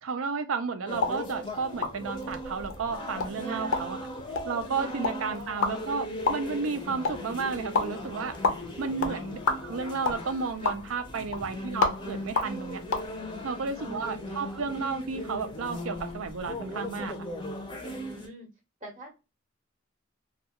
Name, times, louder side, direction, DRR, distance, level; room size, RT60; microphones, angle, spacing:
voice 1, 0.0-4.0 4.4-8.4 8.8-12.8 13.4-17.3, right 5 dB, 80° right, 0.5 m, -32 dB
sound 1, 0.9-13.1, left 4 dB, 80° left, 0.5 m, -33 dB
sound 2, 0.9-18.3, left 1 dB, 25° left, 0.5 m, -38 dB
voice 2, 3.5-3.8 4.8-5.6 8.9-9.2 13.4-14.2 17.8-18.5 18.8-19.1, equal, 30° right, 0.7 m, -44 dB
2.3 x 2.2 x 2.8 m
head